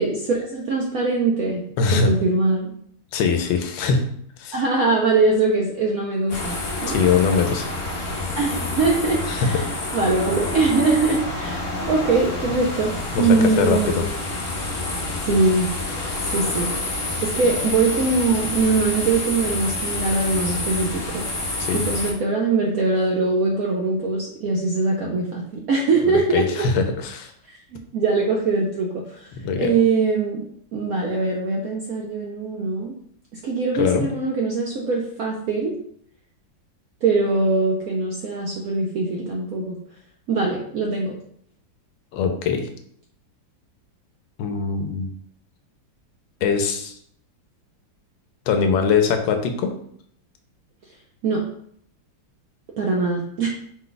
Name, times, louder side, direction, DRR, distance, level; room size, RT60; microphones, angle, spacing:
voice 1, 0.0-1.6 1.9-2.7 4.5-7.0 8.4-9.7 9.9-11.6 11.9-12.9 13.2-14.1 15.2-15.7 16.3-16.7 16.9-21.2 21.7-26.7 27.7-29.3 29.6-30.4 30.7-32.9 33.4-35.7 37.0-39.8 40.3-41.1 51.2-51.4 52.8-53.5, right 3 dB, 70° right, -1 dB, 0.8 m, -22 dB
voice 2, 1.8-2.1 3.1-4.1 4.4-4.6 6.9-7.7 9.3-9.6 13.1-14.0 21.6-21.8 26.3-27.3 29.3-29.7 33.7-34.1 42.1-42.7 44.4-45.1 46.4-46.9 48.5-49.7, left 5 dB, 80° left, 6 dB, 1.3 m, -22 dB
sound 1, 6.3-22.1, left 2 dB, 50° left, 1.0 m, -28 dB
4.9 x 2.2 x 3.9 m, 0.64 s
omnidirectional pair, 2.1 m